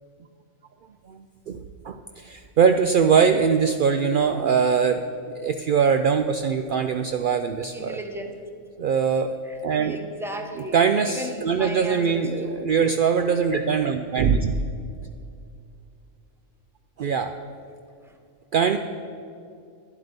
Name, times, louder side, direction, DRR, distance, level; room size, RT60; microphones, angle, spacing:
voice 1, 1.1-5.0 5.3-8.0 8.8-9.4 9.6-10.0 10.7-14.6 17.0-17.3 18.5-18.8, right 6 dB, 70° right, 7 dB, 0.5 m, -22 dB
voice 2, 7.7-8.3 9.4-10.8 11.0-12.6 18.0-18.2, right 1 dB, ahead, 4 dB, 0.9 m, -36 dB
12.0 x 10.0 x 5.2 m, 2.4 s
omnidirectional pair, 1.4 m